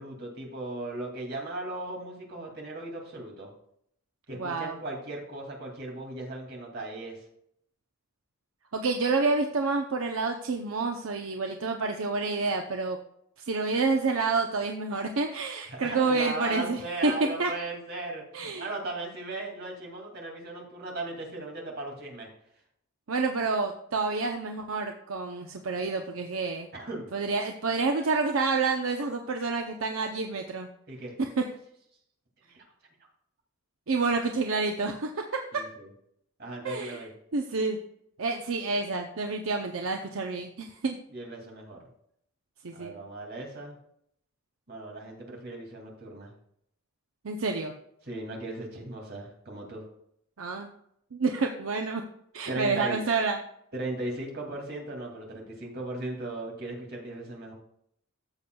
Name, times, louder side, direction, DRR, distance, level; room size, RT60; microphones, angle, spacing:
voice 1, 0.0-3.5 4.3-7.2 15.7-22.3 26.7-27.1 30.9-31.1 32.5-32.6 35.5-35.9 36.4-37.1 41.1-41.8 42.7-43.8 44.7-46.3 48.0-49.8 52.5-53.0 53.7-57.5, right 2 dB, 50° right, 0 dB, 2.4 m, -37 dB
voice 2, 4.3-4.8 8.7-13.0 13.4-17.5 18.3-18.7 23.1-26.7 27.1-30.7 31.2-31.4 33.9-35.6 36.6-37.1 37.3-37.8 38.2-41.0 42.6-42.9 47.2-47.7 50.4-50.7 51.1-52.0 52.3-53.4, right 3 dB, 75° right, 3 dB, 0.7 m, -28 dB
13.5 x 7.0 x 2.3 m, 0.71 s
head